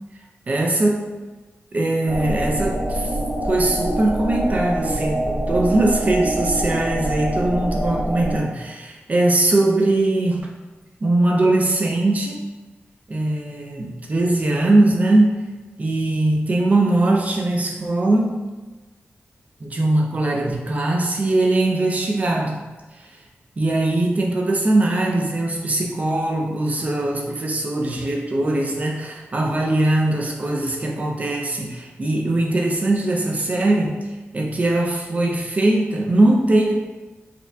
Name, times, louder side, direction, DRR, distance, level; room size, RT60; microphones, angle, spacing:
voice 1, 0.5-1.0 1.7-3.1 3.4-10.4 11.0-12.4 13.1-15.5 15.8-18.5 19.6-22.6 23.6-36.7, right 2 dB, 35° right, 0 dB, 0.5 m, -20 dB
sound 1, 2.1-8.4, right 1 dB, 70° right, 1.2 m, -25 dB
5.0 x 2.2 x 2.7 m, 1.2 s
wide cardioid pair, 160°, 4 cm